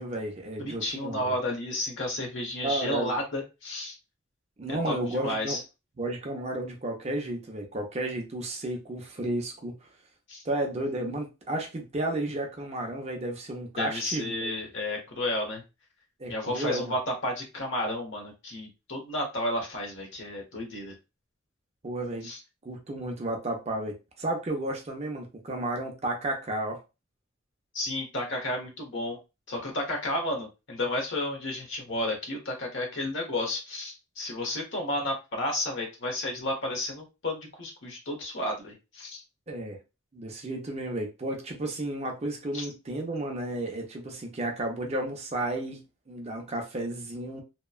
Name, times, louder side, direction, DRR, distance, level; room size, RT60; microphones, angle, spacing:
voice 1, 0.0-1.3 2.6-3.1 4.6-5.6 6.0-9.8 10.4-14.5 16.2-16.9 21.8-22.3 22.6-26.8 39.5-39.8 40.1-47.4, right 1 dB, 30° right, 0.6 m, -32 dB
voice 2, 0.6-4.0 4.7-5.6 10.3-10.4 13.8-15.6 16.3-20.9 22.2-22.4 27.7-29.2 29.5-39.2 42.5-42.7, left 1 dB, 60° left, 1.0 m, -32 dB
2.8 x 2.2 x 2.3 m
head